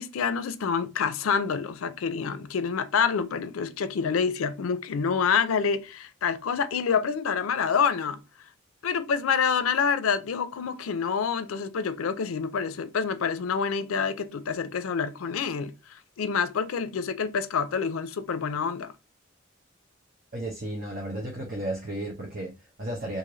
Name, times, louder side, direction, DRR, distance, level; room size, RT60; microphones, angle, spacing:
voice 1, 0.0-8.2 8.8-18.9, left 6 dB, 85° left, 0.4 m, -27 dB
voice 2, 20.3-23.2, right 1 dB, 45° right, 0.8 m, -34 dB
3.1 x 2.5 x 3.7 m
head